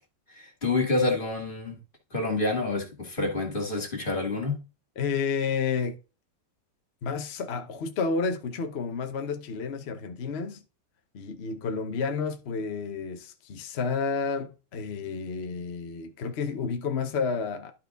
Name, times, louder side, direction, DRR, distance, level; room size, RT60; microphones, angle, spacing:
voice 1, 0.3-1.8 2.1-4.6, left 2 dB, 30° left, 2.2 m, -28 dB
voice 2, 5.0-6.0 7.0-10.6 11.1-17.7, left 5 dB, 50° left, 0.9 m, -30 dB
11.5 x 4.5 x 3.9 m
omnidirectional pair, 1.8 m